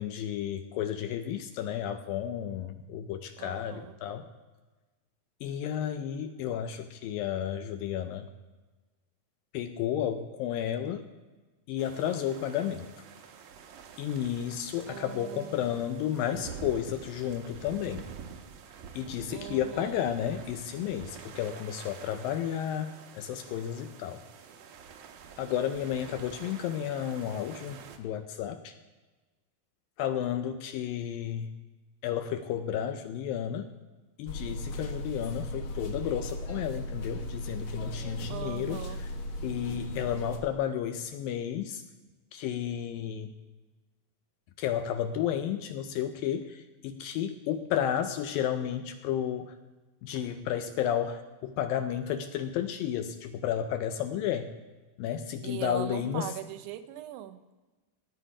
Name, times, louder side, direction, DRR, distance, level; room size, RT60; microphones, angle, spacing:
voice 1, 0.0-4.3 5.4-8.3 9.5-11.0 11.7-12.9 14.0-18.1 18.9-24.2 25.4-28.7 30.0-31.6 32.0-33.7 34.2-38.8 39.4-41.8 42.3-43.3 44.6-49.5 50.0-54.5 55.0-56.3, left 10 dB, 80° left, 8 dB, 2.1 m, -32 dB
voice 2, 3.4-4.0 14.8-15.7 19.3-20.0 38.3-39.0 55.4-57.4, right 13 dB, 85° right, 10 dB, 2.8 m, -40 dB
sound 1, 11.8-28.0, right 6 dB, 70° right, 2.1 m, -48 dB
sound 2, 34.3-40.4, left 1 dB, 60° left, 2.2 m, -37 dB
17.5 x 8.8 x 4.9 m, 1.2 s
omnidirectional pair, 4.5 m